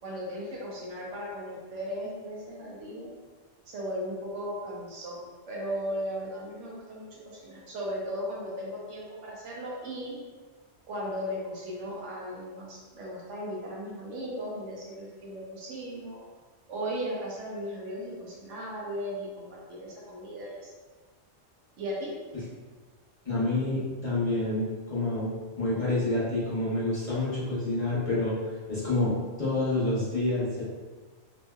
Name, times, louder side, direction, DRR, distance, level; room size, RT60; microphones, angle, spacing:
voice 1, 0.0-3.2 3.7-10.2 10.9-16.2 16.7-20.7 21.8-22.1, equal, 90° right, -4 dB, 1.1 m, -36 dB
voice 2, 23.2-25.3 25.6-28.4 28.7-30.6, left 2 dB, 30° left, -10 dB, 0.9 m, -28 dB
3.0 x 2.7 x 2.3 m, 1.3 s
omnidirectional pair, 1.2 m